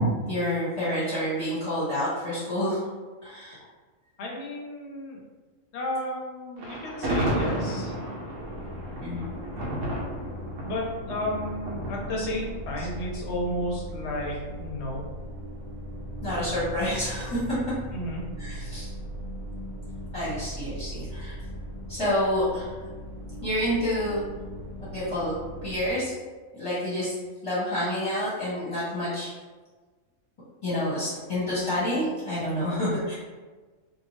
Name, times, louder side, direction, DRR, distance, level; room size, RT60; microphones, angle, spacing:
voice 1, 0.0-2.8 3.2-3.6 9.0-9.3 16.2-17.7 18.4-18.9 20.1-21.3 21.9-22.7 23.4-24.2 24.9-26.1 26.5-27.1 27.4-29.3 30.6-33.1, equal, 25° left, -11 dB, 0.9 m, -28 dB
voice 2, 4.2-5.2 5.7-7.9 10.6-15.0 17.9-18.2, left 1 dB, 60° left, -2 dB, 0.9 m, -32 dB
Thunder, 6.6-13.8, right 1 dB, 70° right, 0.9 m, -33 dB
sound 1, 8.4-25.9, equal, 55° right, 0.5 m, -39 dB
2.7 x 2.2 x 3.1 m, 1.4 s
omnidirectional pair, 1.4 m